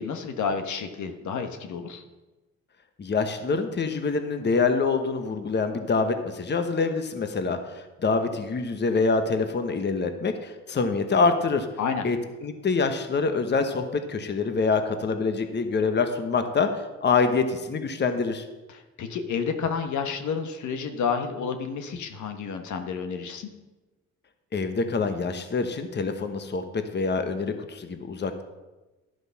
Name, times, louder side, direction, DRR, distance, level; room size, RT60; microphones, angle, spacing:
voice 1, 0.0-2.0 11.8-12.1 18.7-23.5, left 6 dB, 75° left, 6 dB, 1.3 m, -30 dB
voice 2, 3.0-11.7 12.0-12.2 12.4-18.4 24.5-28.4, left 4 dB, 35° left, 7 dB, 1.1 m, -25 dB
11.5 x 7.8 x 5.8 m, 1.1 s
cardioid pair, 90°, 30 cm